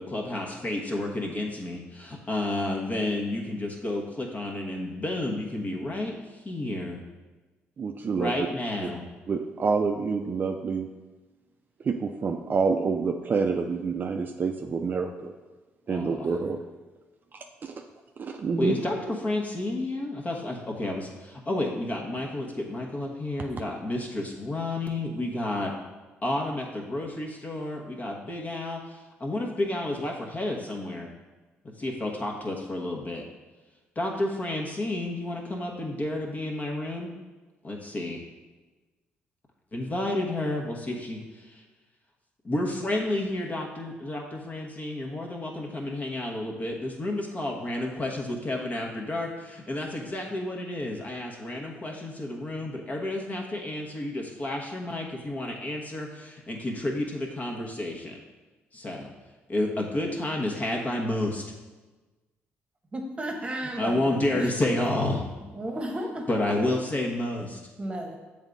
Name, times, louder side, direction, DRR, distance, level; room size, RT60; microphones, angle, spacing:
voice 1, 0.0-7.0 8.1-9.0 15.9-16.3 18.6-25.7 26.2-31.1 31.8-33.2 33.9-37.1 37.6-38.2 39.7-41.6 42.4-58.2 58.7-59.1 59.5-61.4 63.8-65.2 66.3-67.6, left 1 dB, 35° left, 0 dB, 1.2 m, -30 dB
voice 2, 7.8-8.5 8.8-8.9 9.3-10.9 11.8-15.3 15.9-16.6 17.3-17.7 18.2-18.7, right 5 dB, 40° right, 4 dB, 0.5 m, -28 dB
voice 3, 62.9-64.4 65.5-66.3 67.8-68.2, right 1 dB, 25° right, 2 dB, 1.1 m, -33 dB
7.2 x 3.6 x 3.9 m, 1.2 s
supercardioid pair, 75°, 5 cm